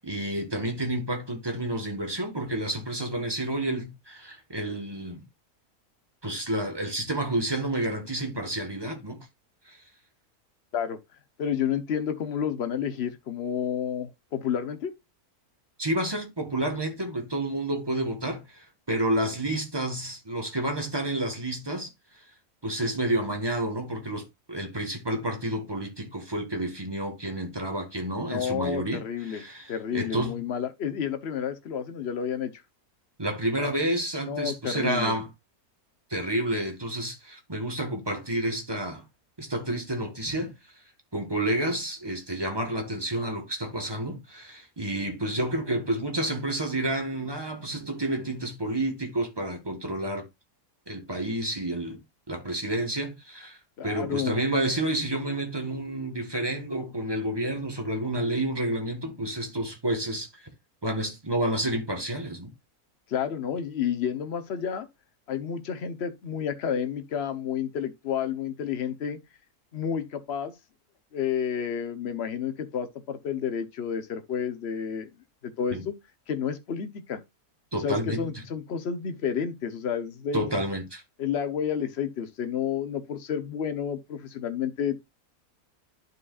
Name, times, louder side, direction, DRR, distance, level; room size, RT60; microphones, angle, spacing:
voice 1, 0.0-5.2 6.2-9.3 9.6-9.8 15.8-21.9 22.6-30.4 33.2-35.3 36.1-39.0 39.4-40.5 41.1-50.2 50.9-52.0 52.3-60.4 60.8-62.5 75.7-75.9 77.7-78.4 80.3-81.0, right 1 dB, 15° right, 1.5 m, -30 dB
voice 2, 11.4-14.9 28.3-29.4 29.7-32.5 34.2-35.2 53.8-54.4 63.1-64.9 65.3-69.2 69.7-70.5 71.1-75.1 75.4-75.9 76.3-77.2 77.8-80.6 81.2-85.0, left 8 dB, 50° left, 1.1 m, -30 dB
11.0 x 4.9 x 2.4 m
omnidirectional pair, 1.6 m